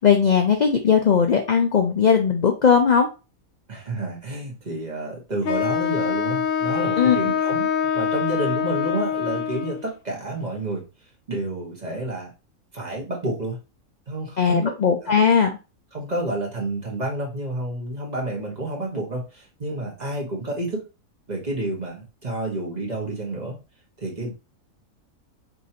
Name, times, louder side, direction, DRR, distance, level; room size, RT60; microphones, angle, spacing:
voice 1, 0.0-3.1 7.0-7.2 14.4-15.6, left 6 dB, 60° left, 4 dB, 0.4 m, -18 dB
voice 2, 3.7-7.7 7.9-10.8 11.3-12.3 12.7-13.6 14.1-14.8 15.0-15.1 15.9-20.8 21.3-23.6 24.0-24.3, right 2 dB, 30° right, -1 dB, 1.3 m, -29 dB
Wind instrument woodwind instrument, 5.4-9.9, left 7 dB, 75° left, 1.1 m, -24 dB
5.3 x 3.1 x 2.8 m, 0.30 s
omnidirectional pair, 1.5 m